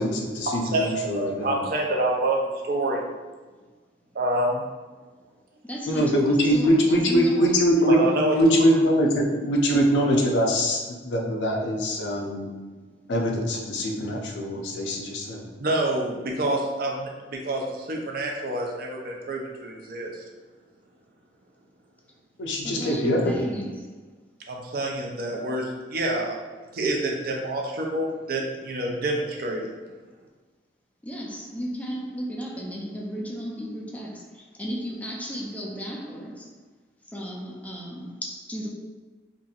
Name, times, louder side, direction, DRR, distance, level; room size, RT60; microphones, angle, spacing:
voice 1, 0.0-1.6 5.9-10.8 11.0-12.5 13.1-15.4 22.4-23.5, equal, 90° left, 0 dB, 0.5 m, -23 dB
voice 2, 0.7-2.4 2.6-3.0 4.1-4.6 7.9-8.4 8.7-8.8 15.6-20.2 24.5-26.4 26.7-29.7, right 1 dB, 55° right, 0 dB, 0.5 m, -27 dB
voice 3, 5.6-7.9 11.9-12.7 22.6-23.9 31.0-36.5 37.1-38.7, equal, 10° left, -1 dB, 0.3 m, -35 dB
2.8 x 2.5 x 2.4 m, 1.3 s
head